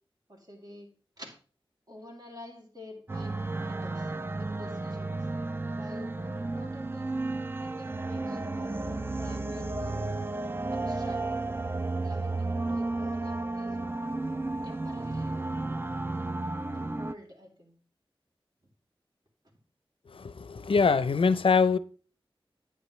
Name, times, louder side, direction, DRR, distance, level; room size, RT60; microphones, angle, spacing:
voice 1, 0.3-1.3 1.9-5.3 5.8-7.1 7.5-10.1 10.7-11.6 12.0-14.0 14.6-15.5 16.7-17.8, left 1 dB, 45° right, 2.7 m, -48 dB
sound 1, 3.1-17.1, right 2 dB, 25° right, 0.4 m, -33 dB
voice 2, 20.1-21.8, left 5 dB, 70° left, 0.5 m, -24 dB
9.5 x 8.8 x 3.1 m
wide cardioid pair, 55°, 9 cm